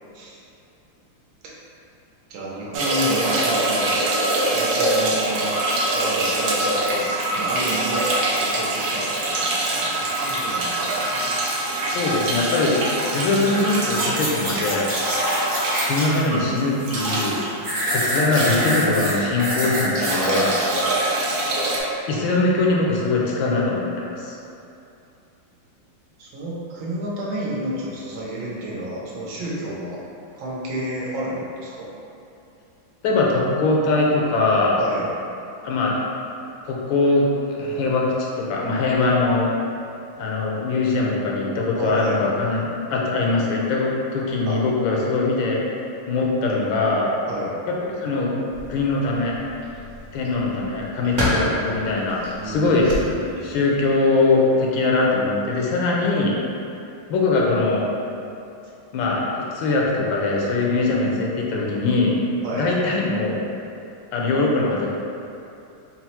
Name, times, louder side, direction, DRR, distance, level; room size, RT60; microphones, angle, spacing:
voice 1, 2.3-4.1 4.5-5.5 5.9-11.3 26.2-30.0 30.3-31.9 34.8-35.1 41.7-42.2 44.5-44.6 47.3-47.5 52.3-53.6 62.4-62.7, right 1 dB, 85° right, -5 dB, 1.6 m, -30 dB
sound 1, 2.7-19.4 19.7-21.8, right 1 dB, 70° right, 1.0 m, -24 dB
voice 2, 11.9-12.8 13.1-14.9 15.9-17.4 17.9-20.6 22.1-24.3 33.0-34.8 35.6-36.0 36.7-38.1 38.4-39.5 40.2-45.6 46.1-47.1 47.7-48.4 48.7-49.4 50.1-52.9 53.4-56.3 57.1-57.9 58.9-59.2 59.5-62.1 62.6-63.4 64.1-64.9, left 3 dB, 85° left, -3 dB, 1.4 m, -21 dB
sound 2, 13.9-16.2 16.6-17.3 17.6-20.5 20.9-21.0, equal, 25° right, 0.7 m, -25 dB
sound 3, 48.5-53.8, equal, 50° right, 1.2 m, -31 dB
4.3 x 2.0 x 4.2 m, 2.7 s
omnidirectional pair, 2.1 m